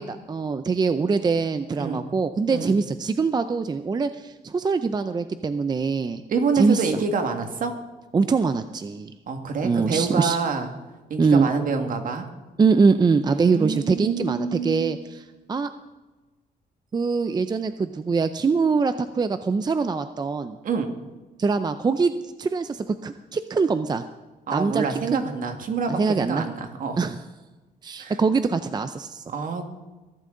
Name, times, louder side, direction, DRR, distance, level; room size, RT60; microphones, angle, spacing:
voice 1, 0.0-6.2 6.5-6.9 8.1-9.1 9.6-10.4 11.2-11.5 12.6-15.7 16.9-20.6 21.4-22.1 22.4-24.0 24.5-25.2 25.9-26.5 27.0-27.2 27.8-29.2, right 4 dB, 25° right, 10 dB, 0.5 m, -23 dB
voice 2, 6.3-7.7 9.3-10.7 11.1-12.3 13.3-15.0 20.6-20.9 24.5-27.0 28.0-28.2 29.3-29.6, right 5 dB, 60° right, 5 dB, 2.0 m, -27 dB
22.5 x 12.0 x 3.9 m, 1.2 s
cardioid pair, 120°, 16 cm